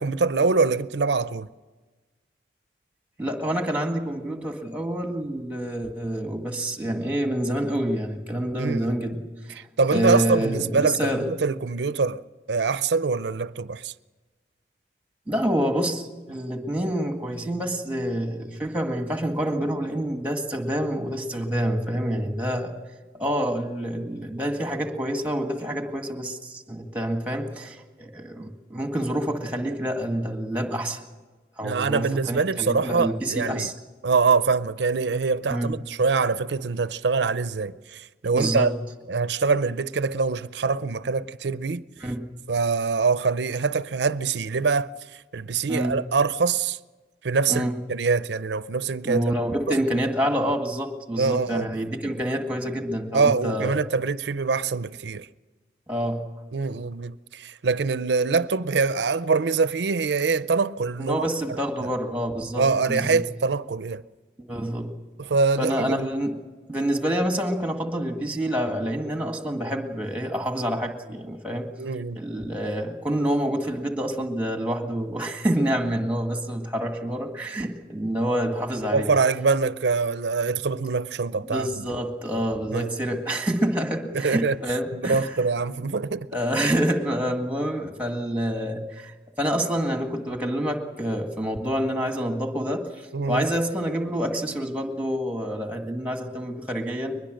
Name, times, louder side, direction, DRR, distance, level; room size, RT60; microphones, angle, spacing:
voice 1, 0.0-1.5 8.6-9.0 9.8-12.2 12.5-13.9 31.6-33.7 34.0-38.7 39.1-41.8 42.5-46.8 47.2-49.2 49.7-49.8 51.2-51.7 53.1-55.3 56.5-61.2 61.5-61.6 62.6-64.0 65.2-66.1 71.8-72.2 78.9-81.9 82.7-82.9 84.1-84.6 84.9-86.3 93.1-93.5, right 4 dB, 80° right, 0.6 m, -24 dB
voice 2, 3.2-9.6 9.9-11.3 15.3-22.7 23.1-31.0 31.6-33.7 35.5-35.7 38.3-38.7 42.0-42.3 45.7-46.0 47.5-47.8 49.0-53.9 55.9-56.2 61.0-63.2 64.5-64.9 65.6-66.4 66.7-71.7 72.1-79.2 81.5-85.3 86.3-89.1 89.4-92.9 93.3-97.2, equal, 10° right, 1.8 m, -27 dB
22.5 x 20.5 x 6.5 m
head